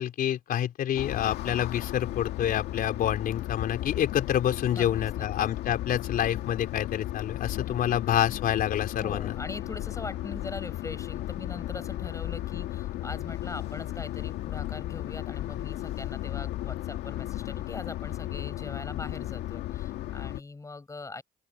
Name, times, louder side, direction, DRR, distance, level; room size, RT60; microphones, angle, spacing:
voice 1, 0.0-9.3, left 10 dB, 60° left, 4.0 m, -28 dB
sound 1, 0.9-20.4, left 14 dB, 80° left, 2.2 m, -35 dB
voice 2, 4.7-5.3 7.7-7.8 9.0-21.2, left 3 dB, 20° left, 6.4 m, -41 dB
open air
cardioid pair, 110°, 17 cm